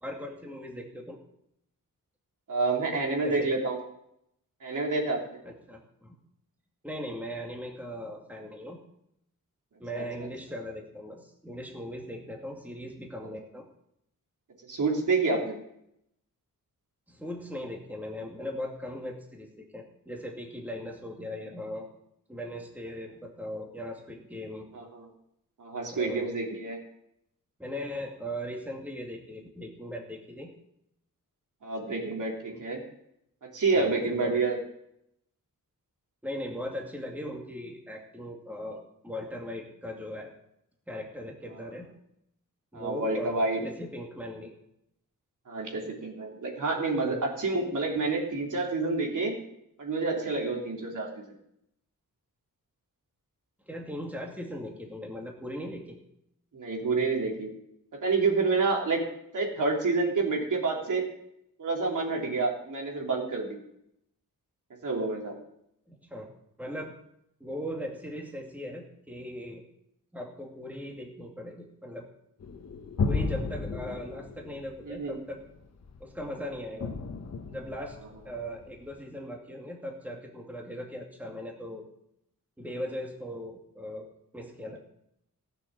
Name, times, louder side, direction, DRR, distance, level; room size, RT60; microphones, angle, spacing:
voice 1, 0.0-1.2 3.2-3.5 5.4-6.2 6.8-8.8 9.8-13.7 17.1-21.9 22.3-24.7 25.9-26.3 27.6-30.5 32.5-32.6 33.7-34.4 36.2-40.4 40.9-41.9 42.7-44.5 53.7-56.0 65.9-66.3 66.6-66.9 67.4-69.6 70.1-72.1 73.0-75.4 76.0-76.9 77.5-78.0 78.2-81.9 82.6-84.1 84.3-84.8, equal, 5° right, 0 dB, 2.3 m, -39 dB
voice 2, 2.5-3.8 4.6-5.4 9.9-10.0 14.7-15.6 24.7-25.0 25.6-26.8 31.6-32.8 33.5-34.6 42.7-43.6 45.5-49.4 49.8-51.2 56.5-57.5 58.0-59.0 59.3-61.0 61.6-63.6 64.8-65.3 74.8-75.2, right 3 dB, 65° right, -1 dB, 3.3 m, -28 dB
sound 1, 72.4-78.9, left 4 dB, 50° left, 1.2 m, -34 dB
16.0 x 6.9 x 7.5 m, 0.77 s
wide cardioid pair, 115°, 33 cm